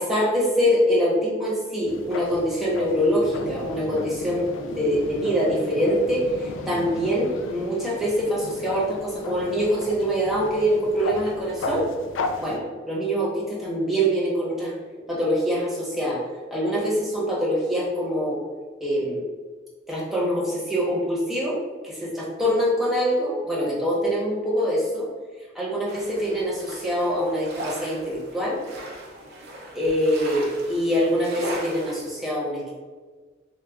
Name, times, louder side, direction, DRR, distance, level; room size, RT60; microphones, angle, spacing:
voice 1, 0.0-11.9 12.4-14.7 15.1-16.2 16.5-18.4 18.8-19.2 19.9-21.6 21.8-25.1 25.5-28.6 29.7-32.7, equal, ahead, -6 dB, 1.0 m, -24 dB
sound 1, 1.9-12.6, left 3 dB, 80° left, 0.4 m, -35 dB
sound 2, 25.9-32.1, right 1 dB, 55° right, 0.8 m, -38 dB
6.5 x 2.2 x 2.3 m, 1.4 s
head